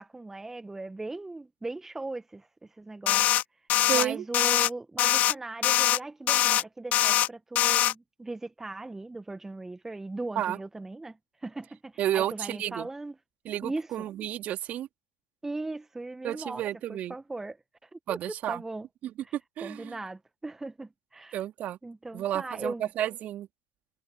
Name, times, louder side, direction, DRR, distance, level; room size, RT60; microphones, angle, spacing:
voice 1, 0.0-3.3 3.9-13.1 13.6-13.9 15.4-16.6 16.9-17.6 17.8-18.9 19.2-19.3 19.6-21.4 21.8-22.9, right 2 dB, 10° right, 1.3 m, -38 dB
sound 1, 3.1-3.4 3.7-4.0 4.3-4.7 5.0-5.3 5.6-6.0 6.3-6.6 6.9-7.3 7.6-7.9, left 13 dB, 45° left, 0.4 m, -23 dB
voice 2, 3.9-4.2 10.4-10.6 12.0-12.9 13.4-14.9 16.2-17.1 18.1-18.6 19.0-19.9 21.3-21.8 22.1-23.5, right 12 dB, 45° right, 2.7 m, -31 dB
hypercardioid pair, 80°, 4 cm